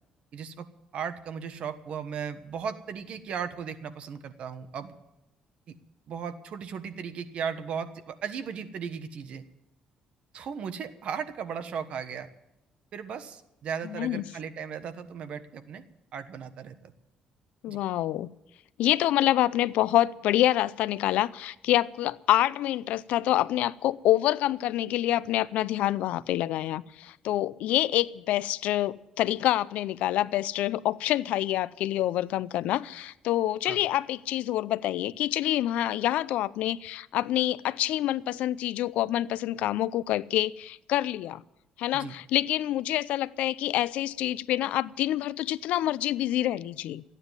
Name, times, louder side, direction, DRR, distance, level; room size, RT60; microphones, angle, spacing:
voice 1, 0.3-0.7 0.9-4.9 5.7-5.8 6.1-9.4 10.3-12.3 12.9-15.8 16.1-16.9 17.7-17.8 33.6-33.8 41.9-42.1, right 7 dB, 60° right, 10 dB, 1.2 m, -36 dB
voice 2, 13.8-14.3 17.6-18.3 18.8-41.4 41.8-47.0, left 13 dB, 85° left, 18 dB, 0.5 m, -27 dB
14.5 x 9.8 x 9.6 m, 0.89 s
cardioid pair, 130°, 2 cm